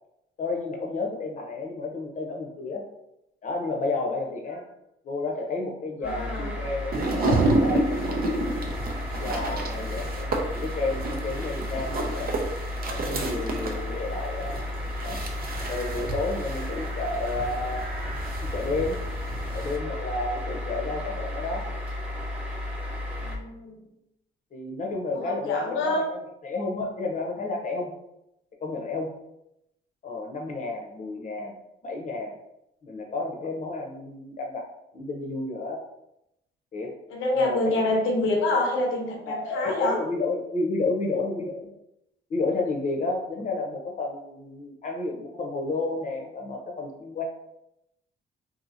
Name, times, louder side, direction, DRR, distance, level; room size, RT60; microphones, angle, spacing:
voice 1, 0.4-2.8 3.4-4.6 5.0-8.4 9.1-12.3 12.9-14.6 15.0-15.2 15.7-17.9 18.4-19.0 19.5-21.7 24.5-26.2 26.4-27.9 28.6-29.1 30.0-31.5 31.8-32.3 32.8-34.7 34.9-35.8 36.7-37.0 37.3-38.1 39.3-41.7 42.3-47.2, left 3 dB, 40° left, 1 dB, 0.7 m, -31 dB
voice 2, 6.0-6.6 12.2-12.5 23.2-23.9 25.1-26.0 37.1-40.0, left 2 dB, 85° left, 1 dB, 0.7 m, -27 dB
sound 1, 6.0-23.4, left 1 dB, 5° right, 0.8 m, -33 dB
sound 2, 6.9-19.8, right 2 dB, 50° right, 0.6 m, -30 dB
2.7 x 2.7 x 2.6 m, 0.84 s
cardioid pair, 90°, 20 cm